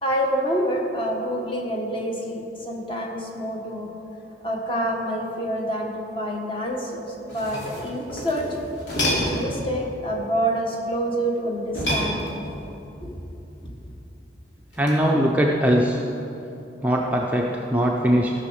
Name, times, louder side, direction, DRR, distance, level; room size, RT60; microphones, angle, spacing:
voice 1, 0.0-3.9 4.4-8.5 9.0-12.2 13.0-13.1, equal, 30° left, -1 dB, 1.6 m, -27 dB
sound 1, 7.1-9.6 11.7-12.7 14.7-15.1, equal, 75° left, 3.1 m, -28 dB
voice 2, 14.8-16.0 16.8-18.3, equal, 10° right, -1 dB, 0.6 m, -21 dB
15.5 x 6.3 x 6.3 m, 2.9 s
head